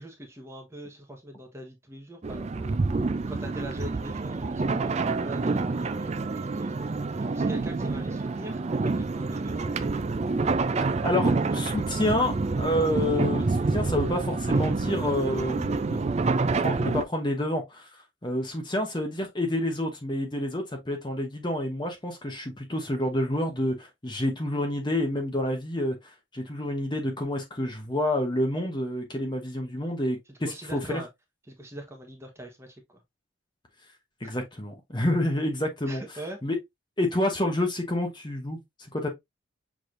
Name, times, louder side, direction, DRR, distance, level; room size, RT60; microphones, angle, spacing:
voice 1, 0.0-2.8 3.3-6.7 7.2-10.1 11.5-11.9 30.5-31.1 31.5-33.0 34.2-34.3 35.9-36.4, right 1 dB, 15° right, 1.1 m, -42 dB
sound 1, 2.2-17.0, right 3 dB, 35° right, 0.4 m, -27 dB
voice 2, 11.0-16.0 16.6-31.0 34.2-36.0 36.4-36.6 37.0-38.6 38.9-39.1, left 1 dB, 20° left, 0.9 m, -28 dB
6.1 x 3.4 x 2.5 m
head